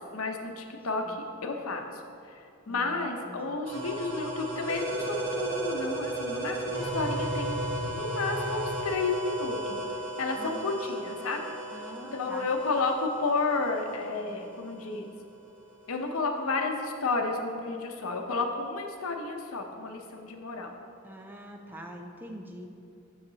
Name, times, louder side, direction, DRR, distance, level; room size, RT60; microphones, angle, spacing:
voice 1, 0.1-7.6 7.9-9.8 10.2-11.4 12.1-15.1 15.9-20.7, left 3 dB, 90° left, 3 dB, 0.8 m, -31 dB
voice 2, 2.7-3.6 10.4-11.1 11.7-12.5 21.0-22.7, right 1 dB, 10° right, 2 dB, 0.5 m, -45 dB
sound 1, 3.7-15.1, right 1 dB, 55° right, 1.3 m, -34 dB
9.7 x 6.5 x 2.8 m, 2.6 s
head